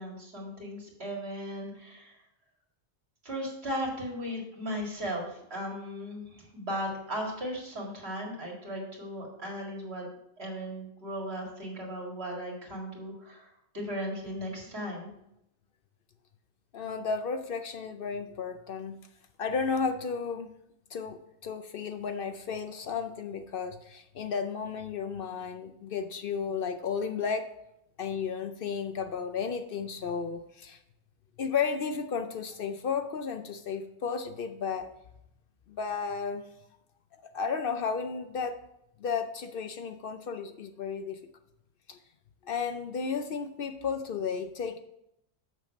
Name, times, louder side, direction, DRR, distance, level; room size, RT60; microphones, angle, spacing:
voice 1, 0.0-2.1 3.2-10.1 10.4-15.1, equal, 65° right, -1 dB, 2.4 m, -37 dB
voice 2, 16.7-19.0 19.4-20.5 20.9-27.5 28.0-30.8 31.4-34.9 35.7-36.4 37.2-38.6 39.0-41.2 41.9-42.0 42.4-44.8, left 5 dB, 60° left, 8 dB, 0.7 m, -33 dB
6.8 x 6.5 x 5.2 m, 0.81 s
omnidirectional pair, 1.1 m